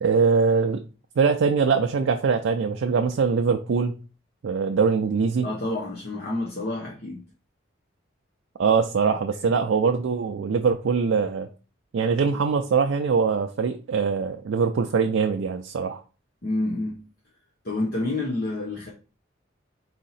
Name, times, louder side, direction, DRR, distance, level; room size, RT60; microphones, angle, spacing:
voice 1, 0.0-0.8 1.2-3.9 4.4-5.5 8.6-11.5 11.9-16.0, right 5 dB, 80° right, 0.4 m, -22 dB
voice 2, 5.4-7.2 9.4-9.5 16.4-17.0 17.6-18.9, left 2 dB, 50° left, 0.8 m, -28 dB
4.2 x 2.7 x 4.0 m
head